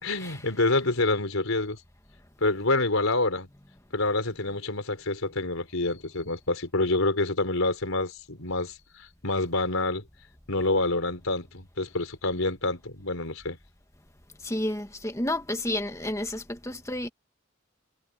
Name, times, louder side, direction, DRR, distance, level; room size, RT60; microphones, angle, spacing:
voice 1, 0.0-1.8 2.4-3.5 3.9-10.1 10.5-13.6, left 2 dB, 80° left, 3.9 m, -27 dB
voice 2, 14.4-17.1, left 1 dB, 15° left, 1.8 m, -30 dB
head